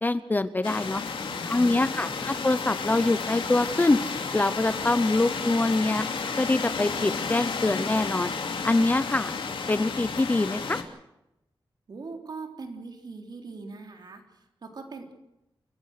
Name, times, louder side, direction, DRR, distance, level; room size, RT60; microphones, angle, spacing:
voice 1, 0.0-1.0 1.5-4.0 4.3-6.0 6.4-8.3 8.6-9.4 9.7-10.8, left 2 dB, 20° left, 13 dB, 0.7 m, -24 dB
sound 1, 0.6-10.8, left 5 dB, 80° left, 2.9 m, -32 dB
voice 2, 1.3-2.3 11.9-15.1, right 3 dB, 55° right, 4 dB, 3.6 m, -41 dB
29.0 x 15.0 x 6.6 m, 0.90 s
wide cardioid pair, 175°, 9 cm